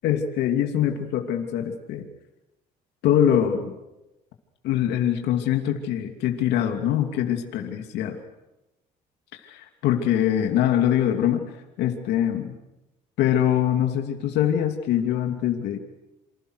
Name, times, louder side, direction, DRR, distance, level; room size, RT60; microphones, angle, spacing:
voice 1, 0.0-2.0 3.0-3.7 4.6-8.2 9.3-11.4 11.8-12.6 13.2-15.8, left 10 dB, 85° left, 4 dB, 2.9 m, -23 dB
28.0 x 25.5 x 6.6 m, 0.99 s
cardioid pair, 110°, 17 cm